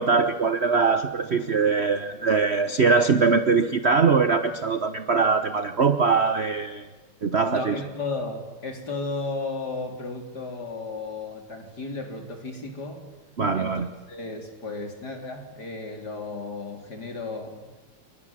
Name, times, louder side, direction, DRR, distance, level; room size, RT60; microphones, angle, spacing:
voice 1, 0.0-6.9 7.2-7.8 13.4-13.9, right 5 dB, 40° right, 10 dB, 0.9 m, -22 dB
voice 2, 7.5-13.0 13.5-13.8 14.1-17.7, left 3 dB, 45° left, 3 dB, 4.4 m, -34 dB
29.5 x 24.0 x 7.5 m, 1.3 s
omnidirectional pair, 2.4 m